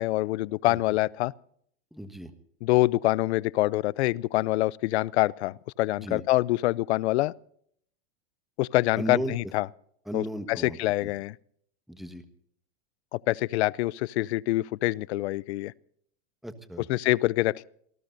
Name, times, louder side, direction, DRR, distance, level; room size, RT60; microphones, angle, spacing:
voice 1, 0.0-1.3 2.6-7.3 8.6-9.7 10.1-11.4 13.1-15.7 16.9-17.6, left 18 dB, 70° left, 0.6 m, -25 dB
voice 2, 1.9-2.3 6.0-6.2 9.0-9.3 10.1-10.8 11.0-11.1 11.9-12.2 16.4-16.9, equal, ahead, 1.4 m, -35 dB
27.5 x 18.5 x 2.6 m
supercardioid pair, 125°, 34 cm